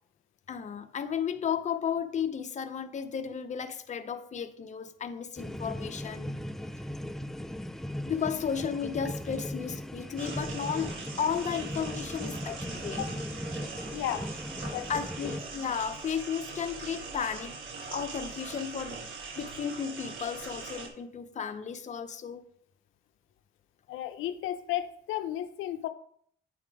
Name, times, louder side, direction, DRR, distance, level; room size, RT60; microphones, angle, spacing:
voice 1, 0.5-6.4 8.1-13.0 14.9-17.6 17.9-22.4, left 7 dB, 35° left, 8 dB, 0.6 m, -34 dB
sound 1, 5.4-15.4, equal, ahead, 0.3 m, -38 dB
sound 2, 10.2-20.9, right 4 dB, 75° right, 1.3 m, -41 dB
voice 2, 13.9-14.3 14.7-14.9 15.2-15.3 23.9-25.9, left 12 dB, 85° left, 9 dB, 0.5 m, -33 dB
8.4 x 3.5 x 4.7 m, 0.64 s
cardioid pair, 90°, 20 cm